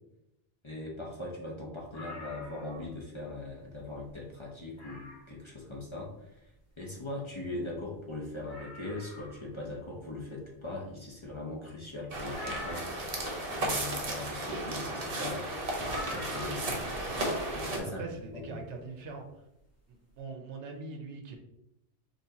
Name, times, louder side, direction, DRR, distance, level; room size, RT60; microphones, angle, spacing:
voice 1, 0.6-15.5 16.1-16.9 17.5-18.0 18.3-18.6, left 2 dB, 30° left, -3 dB, 0.6 m, -40 dB
sound 1, 1.9-3.0 3.4-3.5 4.0-4.1 4.8-5.4 7.1-7.2 7.4-7.5 7.9-8.0 8.4-9.5 12.3-13.3 15.8-16.8 18.1-18.2, left 2 dB, 15° left, 1.2 m, -45 dB
sound 2, 12.1-17.8, right 1 dB, 40° right, 0.7 m, -34 dB
voice 2, 17.9-19.3 19.9-21.4, right 3 dB, 90° right, 3 dB, 1.0 m, -42 dB
4.2 x 3.2 x 2.8 m, 0.84 s
omnidirectional pair, 1.2 m